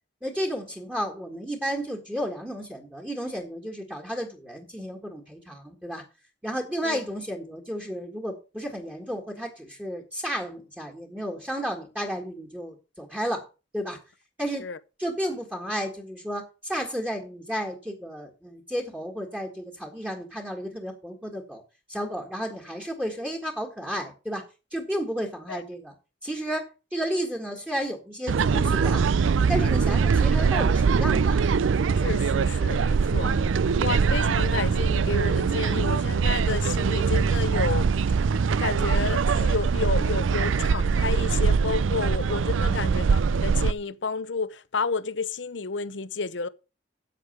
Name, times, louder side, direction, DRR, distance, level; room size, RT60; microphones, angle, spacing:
voice 1, 0.2-6.0 6.4-13.5 13.7-14.0 14.4-14.6 15.0-21.6 21.9-24.5 24.7-25.9 26.2-29.0 29.4-31.5 33.2-33.6 42.6-42.8, equal, 10° right, 1.7 m, -32 dB
sound 1, 28.3-43.7, right 5 dB, 90° right, 0.4 m, -23 dB
voice 2, 31.9-33.4 33.8-37.9 38.6-46.5, left 4 dB, 65° left, 0.8 m, -31 dB
8.4 x 8.2 x 6.6 m
head